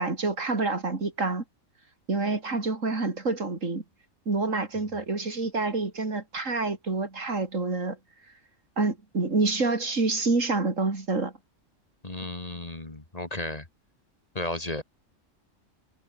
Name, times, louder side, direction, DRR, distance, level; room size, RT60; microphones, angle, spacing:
voice 1, 0.0-1.4 2.1-3.8 4.3-8.0 8.8-11.3, right 3 dB, 75° right, 3.7 m, -27 dB
voice 2, 12.0-13.7 14.3-14.8, left 1 dB, 30° left, 2.4 m, -34 dB
omnidirectional pair, 1.3 m